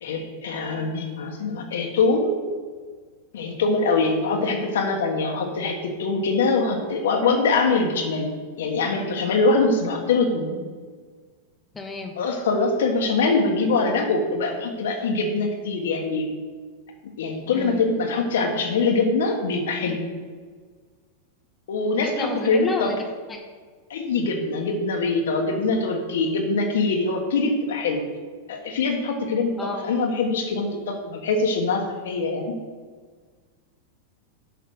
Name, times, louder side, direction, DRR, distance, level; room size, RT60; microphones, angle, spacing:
voice 1, 0.0-2.3 3.3-10.6 12.2-16.3 17.2-20.1 21.7-23.0 23.9-28.0 28.5-29.6 29.9-32.5, left 3 dB, 80° left, 2 dB, 1.4 m, -23 dB
voice 2, 11.7-12.1 17.5-17.8 21.9-23.4 29.6-29.9, left 3 dB, 15° left, 2 dB, 1.4 m, -31 dB
7.0 x 5.7 x 6.5 m, 1.5 s
hypercardioid pair, 115°, 0 cm